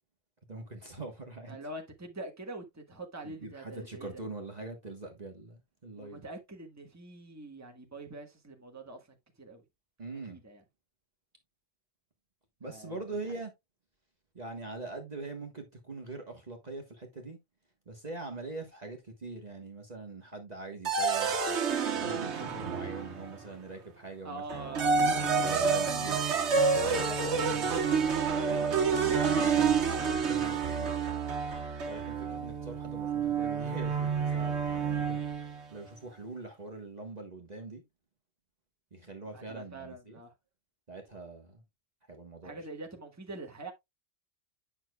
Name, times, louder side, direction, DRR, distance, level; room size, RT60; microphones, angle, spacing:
voice 1, 0.5-1.6 3.2-6.2 10.0-10.4 12.6-13.5 14.3-17.4 17.9-21.6 21.9-24.6 25.0-26.2 26.7-27.7 28.2-28.8 29.1-31.0 31.8-37.8 38.9-40.2 40.9-41.6 42.1-42.6, right 3 dB, 35° right, 1.4 m, -43 dB
voice 2, 1.5-4.2 5.9-9.6 10.3-10.6 12.6-13.0 24.2-26.1 39.3-40.3 42.4-43.7, right 2 dB, 15° right, 1.5 m, -44 dB
sound 1, 20.8-23.4 24.5-35.6, right 5 dB, 65° right, 1.4 m, -29 dB
9.0 x 6.3 x 2.3 m
omnidirectional pair, 1.3 m